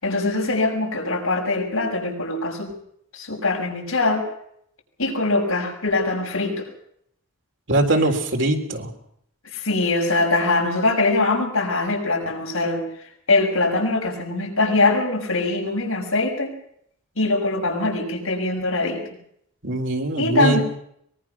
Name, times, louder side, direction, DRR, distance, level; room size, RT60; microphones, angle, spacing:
voice 1, 0.0-2.7 3.1-4.3 5.0-6.6 9.5-12.8 13.3-16.5 17.2-19.0 20.2-20.6, left 2 dB, 85° left, 0 dB, 6.3 m, -22 dB
voice 2, 7.7-8.9 19.6-20.6, right 2 dB, 60° right, 3 dB, 3.6 m, -21 dB
23.5 x 21.5 x 5.9 m, 0.71 s
head